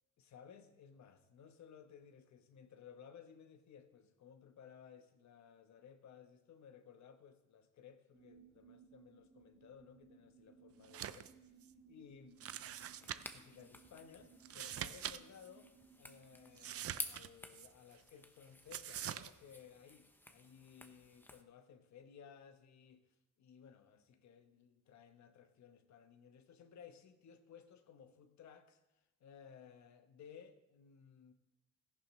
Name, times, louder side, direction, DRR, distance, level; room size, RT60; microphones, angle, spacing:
voice 1, 0.2-11.5 11.9-12.4 12.9-31.3, left 7 dB, 65° left, 8 dB, 1.1 m, -59 dB
sound 1, 8.1-17.0, right 5 dB, 35° right, 1.3 m, -64 dB
sound 2, 10.8-11.3 11.6-11.7 12.4-13.4 14.4-15.2 15.4-15.5 16.6-17.7 18.7-19.3, right 10 dB, 50° right, 0.5 m, -44 dB
sound 3, 12.4-21.4, left 1 dB, 5° left, 0.8 m, -53 dB
14.5 x 11.0 x 3.2 m, 0.98 s
cardioid pair, 90°, 30 cm